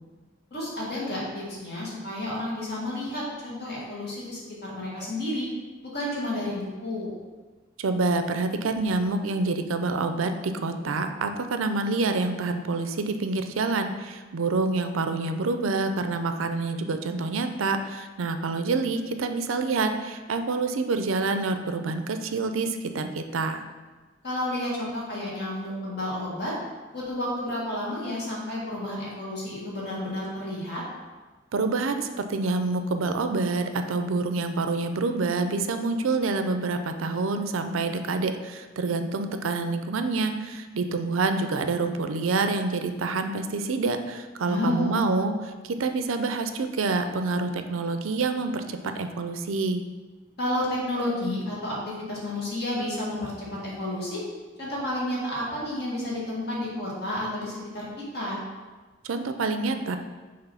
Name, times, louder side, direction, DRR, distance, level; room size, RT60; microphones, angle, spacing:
voice 1, 0.5-5.5 5.8-7.1 24.2-26.5 26.9-30.8 44.4-44.9 50.4-54.2 54.6-57.9 58.1-58.4, left 1 dB, 55° left, -5 dB, 1.9 m, -31 dB
voice 2, 7.8-23.6 31.5-49.8 59.0-60.0, right 3 dB, 80° right, 8 dB, 0.5 m, -27 dB
6.0 x 3.1 x 5.6 m, 1.3 s
head